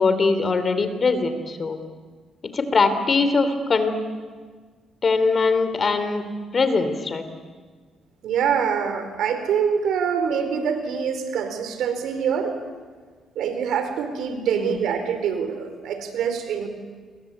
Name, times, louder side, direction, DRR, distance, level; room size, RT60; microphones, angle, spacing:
voice 1, 0.0-1.8 2.4-4.0 5.0-6.3 6.5-7.2 14.6-14.8, left 4 dB, 40° left, 10 dB, 3.3 m, -22 dB
voice 2, 8.2-12.5 13.4-16.7, right 7 dB, 80° right, 8 dB, 4.4 m, -25 dB
29.5 x 23.0 x 8.7 m, 1.5 s
cardioid pair, 90°, 0 cm